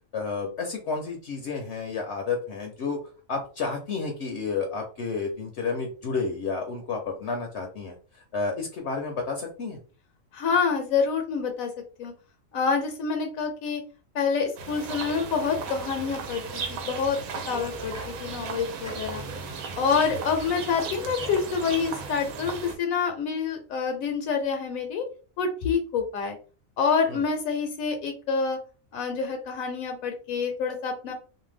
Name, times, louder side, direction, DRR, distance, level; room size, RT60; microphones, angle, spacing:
voice 1, 0.1-3.0 3.3-8.0 8.3-9.8 19.9-20.0 27.1-27.2, left 4 dB, 65° left, 2 dB, 0.8 m, -31 dB
voice 2, 10.3-11.7 12.0-12.1 12.5-13.8 14.1-16.4 16.7-17.2 17.5-19.2 19.8-25.0 25.4-26.4 26.8-28.6 28.9-31.1, left 5 dB, 80° left, 4 dB, 1.0 m, -27 dB
sound 1, 14.6-22.8, right 5 dB, 90° right, 1.0 m, -36 dB
sound 2, 17.6-22.8, right 1 dB, 15° right, 0.7 m, -44 dB
2.6 x 2.1 x 3.2 m, 0.37 s
omnidirectional pair, 1.4 m